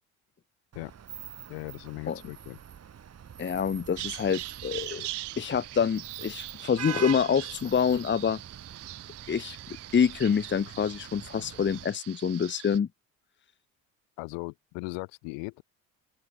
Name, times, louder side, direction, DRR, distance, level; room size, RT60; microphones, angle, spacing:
Vehicle horn car horn honking / Traffic noise roadway noise, 0.7-11.8, right 8 dB, 35° right, 1.8 m, -44 dB
voice 1, 1.5-2.6 14.2-15.6, left 30 dB, 70° left, 2.7 m, -38 dB
voice 2, 3.4-5.1 5.4-8.4 9.3-9.6 9.9-12.9, left 7 dB, 25° left, 1.0 m, -26 dB
Bird vocalization bird call bird song, 4.0-12.8, right 17 dB, 65° right, 6.1 m, -42 dB
open air
hypercardioid pair, 65°, 44 cm